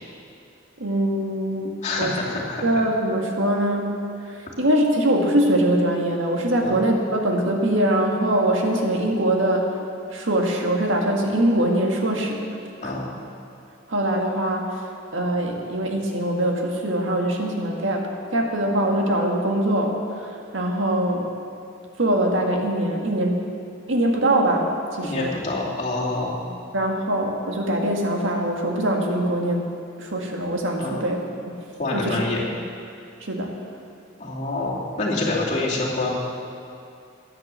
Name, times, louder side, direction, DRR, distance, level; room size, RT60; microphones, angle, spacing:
voice 1, 0.8-4.0 4.2-9.8 10.1-12.5 12.8-12.9 13.9-14.8 15.1-21.2 22.0-23.4 23.9-25.3 26.7-29.7 30.0-31.6 31.9-32.2 33.2-33.5, right 1 dB, 80° right, 1 dB, 1.8 m, -23 dB
voice 2, 1.8-2.8 6.6-6.8 12.8-13.1 25.0-26.4 30.8-31.0 31.8-32.4 34.2-36.1, left 2 dB, 35° left, -5 dB, 2.5 m, -26 dB
11.0 x 10.5 x 7.6 m, 2.5 s
head